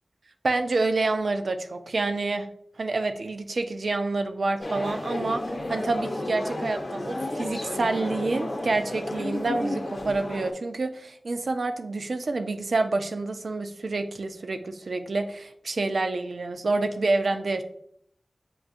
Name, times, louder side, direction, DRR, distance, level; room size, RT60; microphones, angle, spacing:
voice 1, 0.4-2.5 2.8-5.4 5.7-17.6, right 3 dB, 70° right, 7 dB, 0.4 m, -28 dB
sound 1, 4.6-10.5, left 1 dB, 65° left, 0.8 m, -32 dB
7.5 x 2.6 x 2.5 m, 0.68 s
cardioid pair, 45°, 0 cm